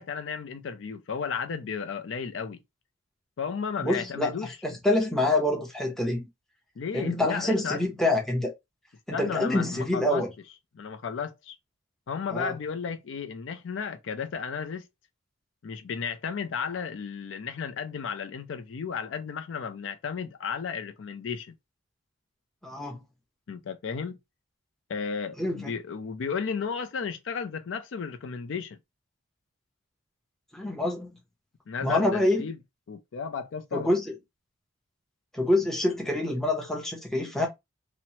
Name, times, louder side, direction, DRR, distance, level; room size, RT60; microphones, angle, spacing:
voice 1, 0.0-2.6 3.4-4.5 6.8-7.8 9.1-10.2 10.7-11.6 12.1-14.9 15.6-21.5 23.5-24.2 24.9-28.8 31.7-32.6 32.9-33.9, left 6 dB, 65° left, 0.4 m, -34 dB
voice 2, 3.8-6.3 6.9-8.5 9.1-10.3 12.3-12.5 22.6-23.0 25.4-25.7 30.5-31.1 31.8-32.5 33.7-34.1 35.3-37.5, left 1 dB, ahead, 0.7 m, -26 dB
2.9 x 2.1 x 2.7 m
head